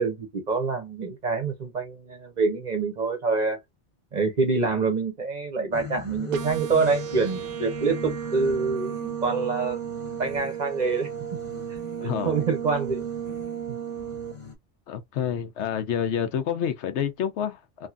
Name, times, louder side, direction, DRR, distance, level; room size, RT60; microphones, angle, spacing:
voice 1, 0.0-3.6 4.1-9.8 10.2-11.1 12.2-13.0 13.7-13.8, right 4 dB, 45° right, 0.8 m, -26 dB
sound 1, 5.7-14.5, left 6 dB, 30° left, 0.7 m, -41 dB
sound 2, 6.3-14.3, right 10 dB, 85° right, 1.0 m, -34 dB
voice 2, 12.0-12.4 14.9-17.9, left 8 dB, 75° left, 0.9 m, -28 dB
2.9 x 2.5 x 2.3 m
omnidirectional pair, 1.2 m